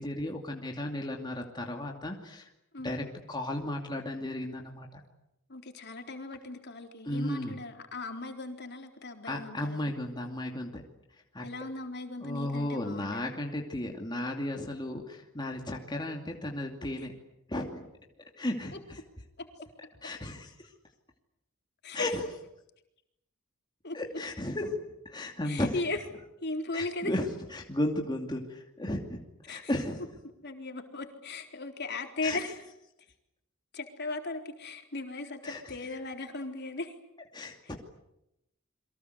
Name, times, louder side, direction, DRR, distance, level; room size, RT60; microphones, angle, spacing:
voice 1, 0.0-2.5 2.8-5.0 7.1-7.5 9.2-10.8 11.3-11.5 12.2-17.1 17.5-17.8 18.4-19.0 20.0-20.7 21.9-22.2 23.9-24.8 25.0-25.8 26.7-29.2 29.5-30.1 32.2-32.4 35.4-35.7 37.3-37.8, left 1 dB, 20° left, 1 dB, 2.6 m, -34 dB
voice 2, 5.5-9.9 11.4-13.3 19.4-19.5 21.8-22.0 23.8-24.0 25.4-26.0 26.4-27.1 29.5-29.7 30.4-32.6 33.7-36.9, left 2 dB, 55° left, 4 dB, 4.0 m, -37 dB
29.0 x 23.5 x 8.1 m, 0.85 s
head